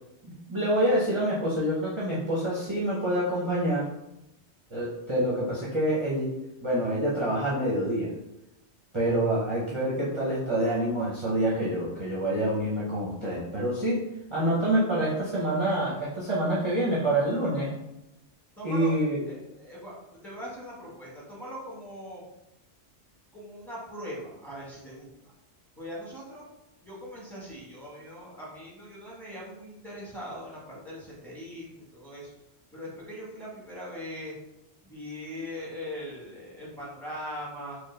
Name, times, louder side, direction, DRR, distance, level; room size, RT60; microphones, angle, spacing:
voice 1, 0.3-3.9 4.7-6.3 6.6-8.1 8.9-17.8 18.6-19.2, right 1 dB, 30° right, -7 dB, 0.7 m, -27 dB
voice 2, 18.6-22.2 23.3-25.3 25.8-26.5 26.8-32.3 32.7-34.3 34.8-37.8, equal, ahead, -6 dB, 1.1 m, -41 dB
4.4 x 2.3 x 3.2 m, 0.88 s
omnidirectional pair, 1.2 m